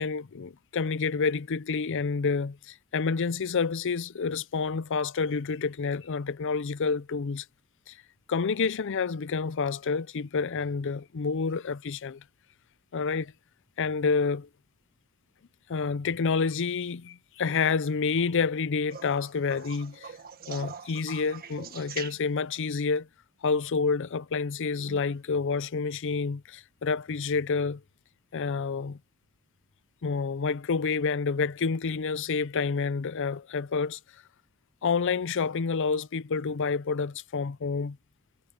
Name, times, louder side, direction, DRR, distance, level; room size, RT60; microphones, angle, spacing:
voice 1, 0.0-7.4 7.9-8.0 8.3-12.2 12.9-13.3 13.8-14.5 15.7-20.1 20.5-23.1 23.4-27.8 28.3-29.0 30.0-34.0 34.8-38.0, left 5 dB, 60° left, 0.5 m, -28 dB
sound 1, 18.9-22.6 24.7-25.2 26.9-27.0, right 7 dB, 45° right, 1.6 m, -44 dB
head